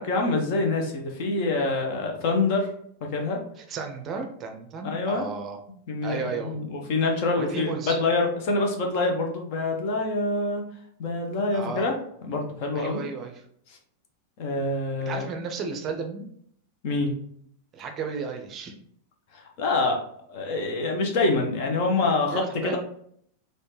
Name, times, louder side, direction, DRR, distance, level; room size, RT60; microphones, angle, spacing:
voice 1, 0.0-2.7 3.0-3.4 4.8-5.2 5.9-10.6 11.0-12.0 12.3-13.0 14.4-15.3 16.8-17.1 19.3-20.0 20.3-22.8, left 3 dB, 45° left, 2 dB, 0.8 m, -26 dB
voice 2, 3.6-5.6 6.0-6.6 7.3-8.0 11.5-11.9 12.7-13.4 15.1-16.3 17.7-18.8 22.3-22.8, right 5 dB, 30° right, 5 dB, 0.5 m, -33 dB
4.2 x 2.6 x 3.1 m, 0.65 s
figure-of-eight pair, 90°, 0 cm